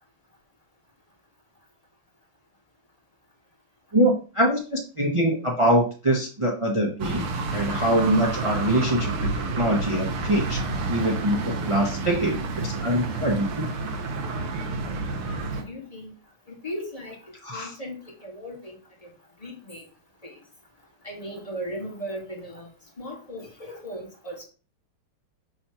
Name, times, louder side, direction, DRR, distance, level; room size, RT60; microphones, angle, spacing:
voice 1, 3.9-10.6 10.9-13.6 17.4-17.7, right 1 dB, 40° right, -2 dB, 0.4 m, -24 dB
sound 1, 7.0-15.6, right 3 dB, 75° right, 1.8 m, -29 dB
voice 2, 15.6-16.1 16.5-17.1 17.5-18.8 19.4-19.8 20.2-20.3 21.0-22.7 23.0-24.4, equal, 20° left, -2 dB, 1.4 m, -37 dB
6.3 x 3.0 x 5.6 m, 0.36 s
omnidirectional pair, 2.4 m